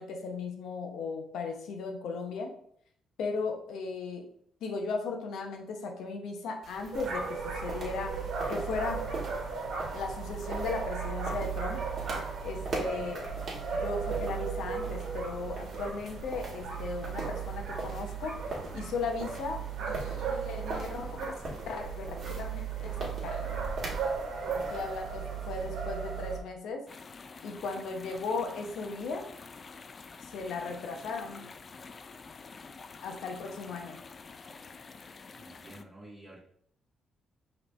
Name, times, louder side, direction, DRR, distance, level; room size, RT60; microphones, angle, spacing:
voice 1, 0.0-2.5 3.2-4.3 4.6-8.2 8.5-9.0 9.9-11.8 12.1-13.3 13.7-18.4 18.7-23.6 24.5-26.9 27.4-29.3 30.2-31.5 33.0-34.0, left 4 dB, 80° left, 3 dB, 0.8 m, -37 dB
sound 1, 6.6-25.6, right 2 dB, 50° right, 1.6 m, -43 dB
sound 2, 6.9-26.4, right 6 dB, 70° right, 1.2 m, -36 dB
sound 3, 26.9-35.8, left 4 dB, 40° left, 0.3 m, -48 dB
voice 2, 35.3-36.4, right 1 dB, 25° right, -9 dB, 1.5 m, -50 dB
5.1 x 3.2 x 3.2 m, 0.67 s
cardioid pair, 90°, 0 cm